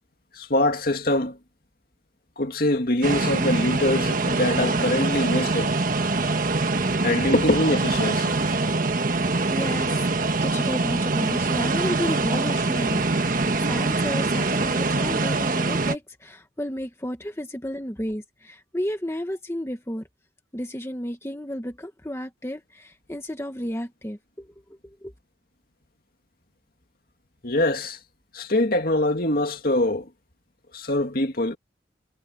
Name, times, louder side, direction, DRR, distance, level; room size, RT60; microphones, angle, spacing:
voice 1, 0.4-1.4 2.4-5.7 7.0-8.3 27.4-28.0 28.3-30.1 30.7-31.6, left 1 dB, 50° left, 2.4 m, -23 dB
sound 1, 3.0-16.0, right 3 dB, 45° right, 1.3 m, -24 dB
voice 2, 9.2-20.0 20.5-24.5 25.0-25.1, equal, 15° left, 1.2 m, -32 dB
head